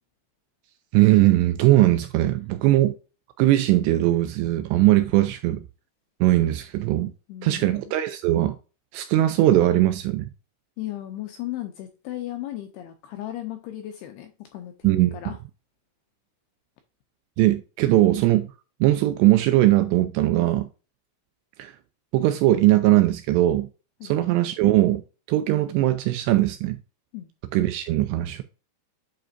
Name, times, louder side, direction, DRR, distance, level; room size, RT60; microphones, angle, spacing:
voice 1, 0.9-3.0 3.4-5.7 6.2-7.1 7.4-8.6 8.9-10.3 14.8-15.2 17.4-18.5 18.8-20.7 21.6-21.7 22.1-23.7 24.0-25.0 25.3-26.8 27.5-28.4, right 15 dB, 85° right, 2.5 m, -20 dB
voice 2, 7.3-7.9 10.8-15.4 24.0-24.1 27.1-27.3, left 14 dB, 85° left, 2.3 m, -36 dB
8.6 x 5.1 x 2.5 m
omnidirectional pair, 5.3 m